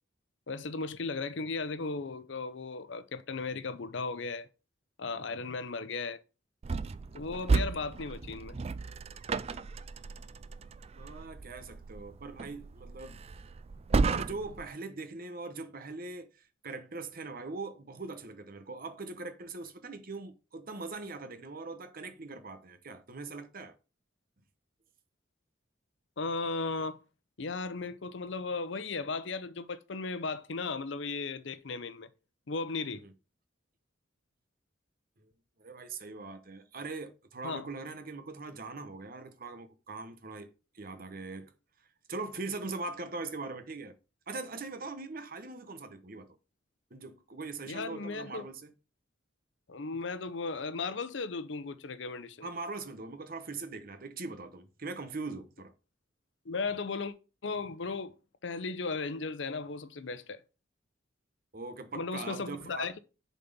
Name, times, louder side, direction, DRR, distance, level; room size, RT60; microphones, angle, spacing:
voice 1, 0.5-4.5 5.0-6.2 7.1-8.6 26.2-27.0 27.4-32.1 32.5-33.1 37.4-37.6 47.7-48.4 49.7-52.5 56.5-57.1 57.4-58.1 58.4-60.4 62.0-63.0, left 4 dB, 70° left, 0.7 m, -36 dB
sound 1, 6.6-14.7, right 4 dB, 30° right, 0.3 m, -34 dB
voice 2, 10.9-13.2 14.1-23.7 33.0-33.1 35.2-35.3 35.6-40.5 40.7-41.5 42.1-44.0 44.3-46.4 46.9-48.7 52.4-55.7 61.5-62.9, right 3 dB, 50° right, 1.0 m, -41 dB
6.9 x 4.2 x 5.4 m
head